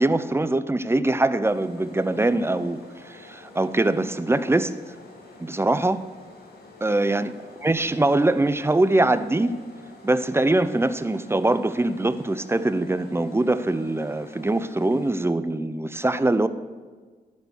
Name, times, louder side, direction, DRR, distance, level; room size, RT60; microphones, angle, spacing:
voice 1, 0.0-4.7 5.4-6.1 6.8-7.4 7.6-9.6 10.0-16.5, right 2 dB, 15° right, 0.5 m, -23 dB
sound 1, 1.4-15.1, left 2 dB, 75° left, 1.7 m, -48 dB
10.5 x 5.3 x 6.3 m
cardioid pair, 55°, 16 cm